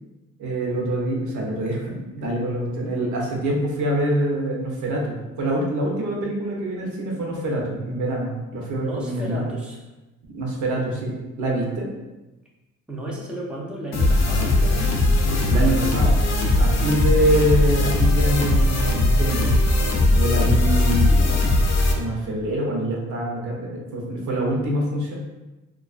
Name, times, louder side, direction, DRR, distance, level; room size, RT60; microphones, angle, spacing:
voice 1, 0.4-9.5 10.2-11.9 15.5-16.1 16.6-19.5 20.1-21.2 21.9-25.1, right 1 dB, 75° right, -2 dB, 0.7 m, -25 dB
voice 2, 8.8-9.8 12.9-16.0 20.7-21.4, right 1 dB, 5° right, -3 dB, 0.4 m, -35 dB
sound 1, 13.9-21.9, left 2 dB, 60° left, 0.5 m, -19 dB
2.3 x 2.3 x 2.4 m, 1.1 s
cardioid pair, 90°, 30 cm